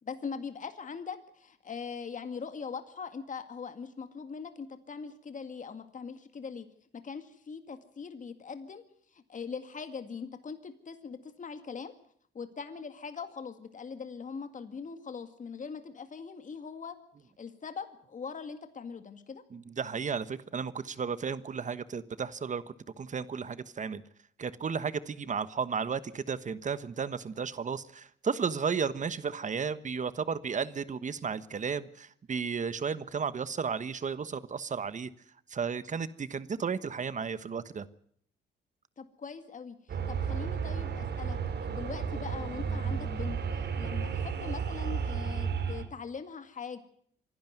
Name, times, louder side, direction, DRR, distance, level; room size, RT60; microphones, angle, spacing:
voice 1, 0.0-6.7 7.0-8.8 9.1-11.9 12.3-17.0 17.4-19.4 39.0-46.8, left 5 dB, 40° left, 8 dB, 2.1 m, -41 dB
voice 2, 19.5-22.6 23.0-24.0 24.4-35.1 35.5-37.9, right 6 dB, 40° right, 14 dB, 1.3 m, -33 dB
sound 1, 39.9-45.8, right 6 dB, 55° right, 3.1 m, -33 dB
25.5 x 12.0 x 9.3 m, 0.65 s
cardioid pair, 90°, 20 cm